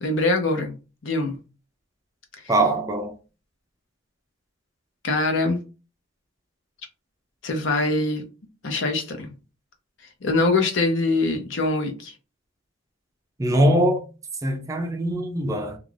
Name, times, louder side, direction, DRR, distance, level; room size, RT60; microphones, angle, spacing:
voice 1, 0.0-0.7 1.0-1.4 5.0-5.6 7.4-8.3 8.6-9.3 10.2-12.1, left 2 dB, 70° left, 0.7 m, -23 dB
voice 2, 2.5-3.1 13.4-14.0 14.4-15.8, right 1 dB, 15° right, 0.3 m, -22 dB
2.4 x 2.3 x 3.2 m
head